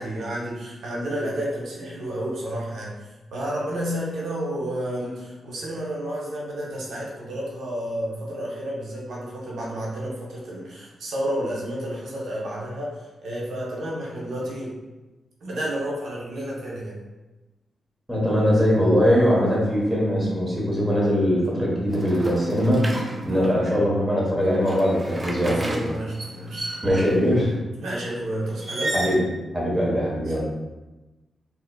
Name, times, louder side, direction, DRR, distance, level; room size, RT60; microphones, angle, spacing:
voice 1, 0.0-3.0 3.3-14.7 15.4-17.0 23.3-23.6 25.4-26.7 27.8-28.9 30.3-30.4, right 1 dB, 85° right, -4 dB, 0.8 m, -31 dB
voice 2, 18.1-25.8 26.8-27.6 28.9-29.2 29.5-30.4, equal, 5° right, -5 dB, 1.1 m, -21 dB
sound 1, 21.9-23.6 24.4-27.3 28.5-29.2, right 1 dB, 25° right, 0.4 m, -33 dB
3.7 x 2.7 x 2.2 m, 1.1 s
cardioid pair, 105°, 0 cm